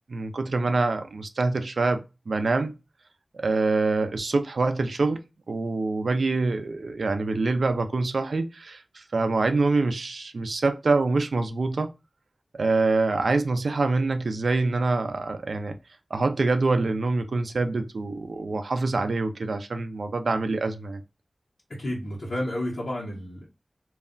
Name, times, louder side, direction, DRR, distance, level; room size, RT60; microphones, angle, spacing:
voice 1, 0.1-2.0 2.3-2.7 3.3-5.2 5.5-11.9 12.5-15.8 16.1-21.0, right 3 dB, 90° right, 0.4 m, -25 dB
voice 2, 21.7-23.4, left 1 dB, 90° left, 0.9 m, -31 dB
2.3 x 2.1 x 3.6 m
wide cardioid pair, 75°, 0 cm